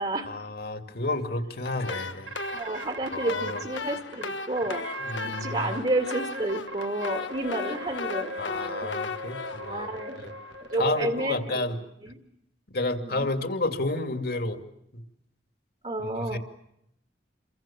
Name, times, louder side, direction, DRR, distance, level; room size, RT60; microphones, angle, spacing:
voice 1, 0.3-2.3 3.1-3.6 5.0-5.6 8.4-9.9 10.2-10.3 10.8-11.8 12.7-14.6 14.9-15.0 16.0-16.4, left 2 dB, 55° left, 7 dB, 2.6 m, -31 dB
sound 1, 1.6-10.7, left 4 dB, 85° left, 1.5 m, -37 dB
sound 2, 2.3-3.6 4.1-4.2 4.6-5.8 6.1-11.3, right 1 dB, 70° right, 1.4 m, -39 dB
voice 2, 2.5-4.8 5.2-8.9 9.6-10.2 10.7-11.7 12.0-12.2 13.0-13.3 15.8-16.4, right 2 dB, 35° right, 5 dB, 2.1 m, -30 dB
29.5 x 24.0 x 7.4 m, 0.78 s
head